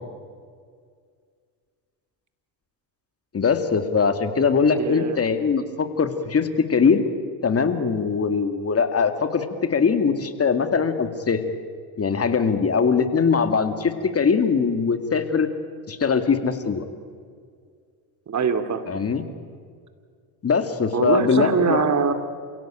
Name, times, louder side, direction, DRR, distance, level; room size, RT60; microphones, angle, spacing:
voice 1, 3.3-7.0 7.4-11.4 12.0-15.5 15.9-16.8 18.9-19.3 20.4-21.9, left 5 dB, 30° left, 9 dB, 2.2 m, -21 dB
voice 2, 4.8-5.2 18.3-19.0 20.9-22.1, right 6 dB, 35° right, 9 dB, 2.6 m, -23 dB
28.0 x 17.0 x 9.1 m, 2.1 s
supercardioid pair, 85°, 46 cm